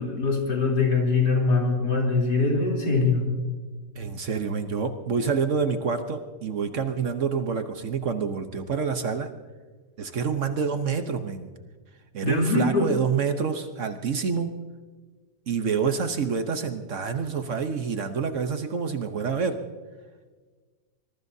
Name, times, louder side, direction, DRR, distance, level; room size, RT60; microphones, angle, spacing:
voice 1, 0.0-3.3 12.2-12.9, left 3 dB, 85° left, -1 dB, 4.1 m, -23 dB
voice 2, 4.0-9.3 10.0-11.5 12.1-14.5 15.5-19.6, right 6 dB, 55° right, 8 dB, 1.1 m, -27 dB
24.0 x 22.0 x 2.7 m, 1.4 s
omnidirectional pair, 1.8 m